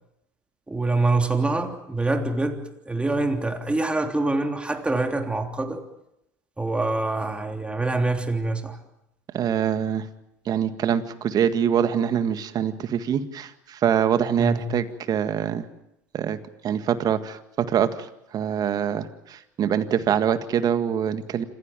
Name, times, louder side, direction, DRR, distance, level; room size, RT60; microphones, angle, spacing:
voice 1, 0.7-2.6 2.9-5.8 6.6-8.8 14.4-14.8, right 2 dB, 10° right, 3.3 m, -25 dB
voice 2, 9.3-10.1 10.5-15.7 16.1-16.4 16.6-17.9 18.3-21.5, right 8 dB, 45° right, 1.9 m, -24 dB
26.5 x 15.5 x 9.1 m
hypercardioid pair, 75°, 9 cm